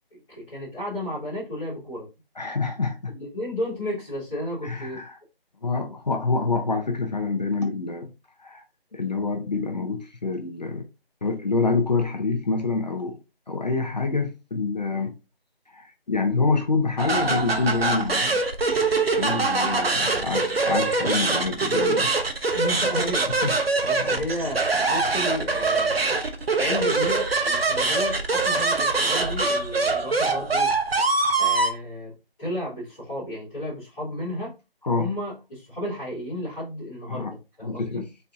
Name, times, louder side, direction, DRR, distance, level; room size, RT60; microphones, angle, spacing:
voice 1, 0.3-2.1 3.1-5.0 14.9-15.1 22.5-23.3 23.8-26.0 26.6-30.7 31.4-34.5 35.0-38.1, left 1 dB, 5° left, 0.8 m, -33 dB
voice 2, 2.4-3.2 4.6-5.2 5.6-8.1 8.4-8.6 8.9-10.8 11.2-13.2 13.5-15.1 15.7-18.4 19.2-22.1 23.4-23.6 23.9-24.2 34.8-35.1 37.1-37.3 37.6-38.0, left 4 dB, 45° left, 0.7 m, -26 dB
sound 1, 17.0-31.7, right 3 dB, 75° right, 0.8 m, -23 dB
4.1 x 3.4 x 2.5 m
figure-of-eight pair, 160°, 30 cm